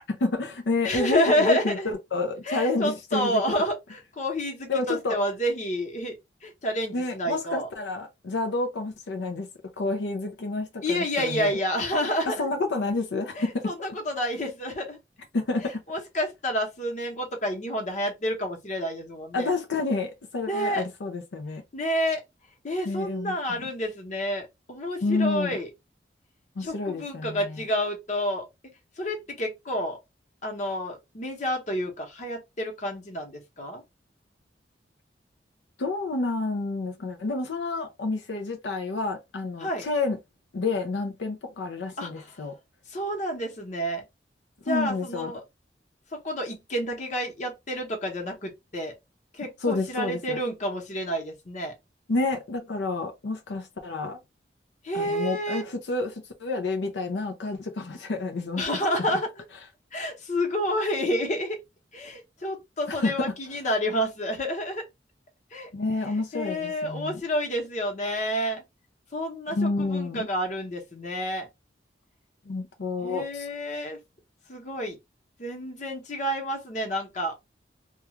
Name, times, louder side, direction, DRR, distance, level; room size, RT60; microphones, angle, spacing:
voice 1, 0.1-3.4 4.7-5.2 6.9-9.5 9.8-11.6 12.2-13.7 15.3-15.8 19.3-21.6 22.8-23.7 25.0-25.6 26.6-27.7 35.8-40.2 40.5-42.5 44.7-45.3 49.6-50.4 52.1-54.2 54.9-58.6 62.9-63.3 65.7-67.2 69.5-70.3 72.5-73.5, left 3 dB, 85° left, 0.5 m, -29 dB
voice 2, 0.8-1.9 2.4-6.2 6.4-7.7 10.8-12.5 13.3-15.0 15.6-19.5 20.5-20.9 21.7-22.2 22.6-25.7 26.6-28.5 29.0-30.0 30.4-33.8 39.6-39.9 42.0-42.1 42.9-44.0 44.7-45.4 46.1-48.9 49.3-51.7 54.8-55.6 58.6-59.4 59.9-61.6 61.9-64.8 65.5-65.7 66.3-68.6 69.1-71.5 73.0-74.0 74.5-75.0 75.4-77.4, equal, 45° left, 0.9 m, -29 dB
2.3 x 2.3 x 3.0 m
head